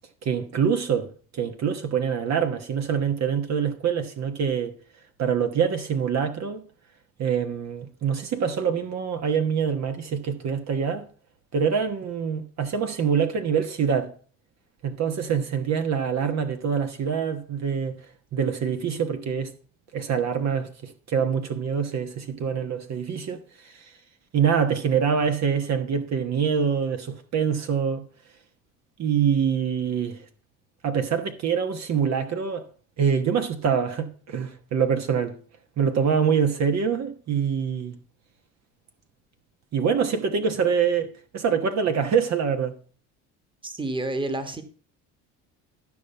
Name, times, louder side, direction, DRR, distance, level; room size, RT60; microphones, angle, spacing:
voice 1, 0.2-4.7 5.2-6.6 7.2-11.1 11.5-14.1 14.8-18.0 18.3-19.5 19.9-23.9 24.3-28.0 29.0-30.2 30.8-32.7 33.0-35.3 35.8-38.0 39.7-42.7, right 7 dB, 50° right, 1.3 m, -25 dB
voice 2, 43.6-44.6, right 2 dB, 15° right, 1.5 m, -29 dB
12.5 x 5.3 x 5.5 m
supercardioid pair, 85°, 34 cm